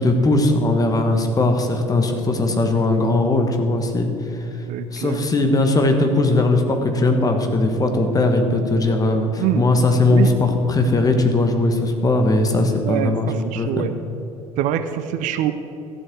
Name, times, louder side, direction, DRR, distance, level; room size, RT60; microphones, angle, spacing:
voice 1, 0.0-4.4 4.9-13.9, left 2 dB, 20° left, 5 dB, 1.6 m, -19 dB
voice 2, 4.7-5.2 9.4-9.6 10.1-10.3 12.8-13.9 14.6-15.5, right 11 dB, 50° right, 10 dB, 0.6 m, -24 dB
13.5 x 7.8 x 6.2 m, 2.9 s
figure-of-eight pair, 65°, 17 cm